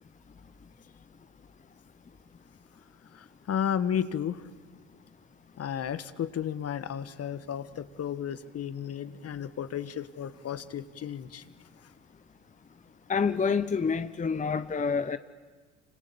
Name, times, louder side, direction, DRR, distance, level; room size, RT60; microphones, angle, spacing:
voice 1, 3.1-4.4 5.6-11.4, left 9 dB, 40° left, 14 dB, 1.4 m, -33 dB
voice 2, 13.1-15.2, left 5 dB, 20° left, 12 dB, 0.9 m, -27 dB
27.0 x 25.5 x 7.1 m, 1.4 s
hypercardioid pair, 65°, 36 cm